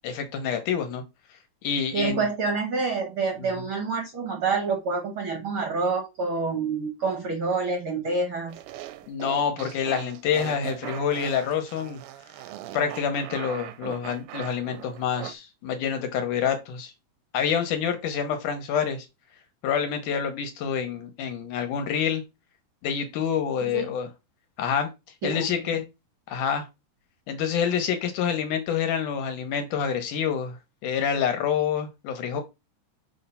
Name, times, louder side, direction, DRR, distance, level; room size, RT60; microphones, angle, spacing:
voice 1, 0.0-1.0 1.6-2.3 3.6-3.7 9.1-12.0 12.7-16.9 17.3-19.1 19.6-22.2 22.8-24.1 24.6-24.9 25.2-25.8 26.3-26.7 27.3-30.6 30.8-32.4, left 7 dB, 70° left, 2.4 m, -27 dB
voice 2, 1.9-8.6 23.7-23.8 25.2-25.5, right 4 dB, 70° right, 1.2 m, -27 dB
sound 1, 8.5-15.3, right 14 dB, 90° right, 2.3 m, -39 dB
6.4 x 3.3 x 5.5 m
omnidirectional pair, 4.0 m